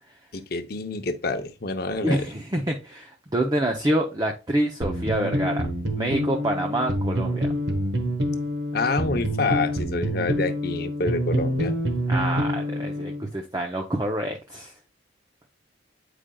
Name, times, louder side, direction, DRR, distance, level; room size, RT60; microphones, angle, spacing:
voice 1, 0.3-2.2 8.7-11.7, left 3 dB, 50° left, 0.8 m, -27 dB
voice 2, 2.0-5.6 6.0-7.5 12.1-14.7, right 1 dB, 20° right, 0.6 m, -27 dB
sound 1, 4.8-13.2, equal, 65° right, 1.1 m, -27 dB
8.8 x 5.0 x 2.3 m
head